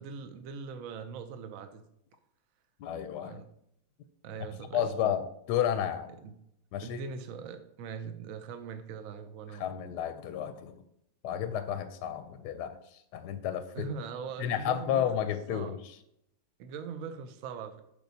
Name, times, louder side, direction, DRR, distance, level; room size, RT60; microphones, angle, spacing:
voice 1, 0.0-1.8 3.2-3.5 4.2-4.9 6.1-6.3 6.8-9.8 13.7-15.1 15.5-15.8 16.6-17.8, right 5 dB, 70° right, 8 dB, 0.8 m, -41 dB
voice 2, 2.8-3.4 4.7-6.1 6.7-7.0 9.5-10.8 11.2-13.9 14.4-15.9, left 9 dB, 75° left, 10 dB, 1.1 m, -32 dB
8.3 x 6.1 x 2.7 m, 0.76 s
omnidirectional pair, 1.9 m